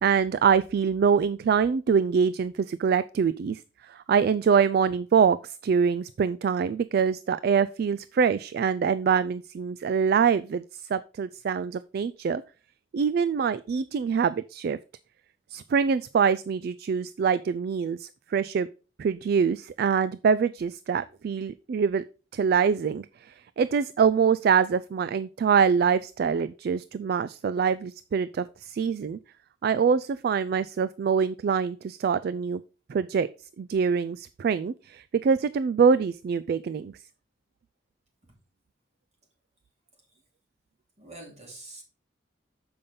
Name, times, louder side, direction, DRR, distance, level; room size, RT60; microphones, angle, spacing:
voice 1, 0.0-10.6 10.9-12.4 12.9-14.8 15.5-18.7 19.0-22.0 22.3-23.1 23.6-29.2 29.6-32.6 32.9-33.3 33.6-36.9, right 6 dB, 55° right, 15 dB, 0.3 m, -24 dB
voice 2, 41.0-41.8, right 2 dB, 40° right, 0 dB, 3.1 m, -46 dB
6.9 x 5.5 x 5.2 m, 0.35 s
head